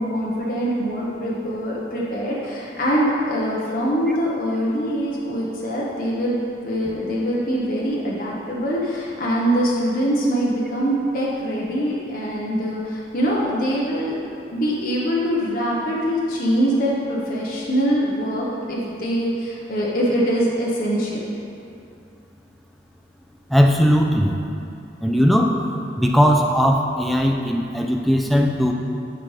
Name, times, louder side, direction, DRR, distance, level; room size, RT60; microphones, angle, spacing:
voice 1, 0.0-14.2 14.5-21.3, equal, 50° left, -5 dB, 1.0 m, -23 dB
voice 2, 23.5-24.4 25.0-25.6 26.0-28.7, equal, ahead, 1 dB, 0.4 m, -18 dB
11.0 x 5.2 x 3.2 m, 2.6 s
head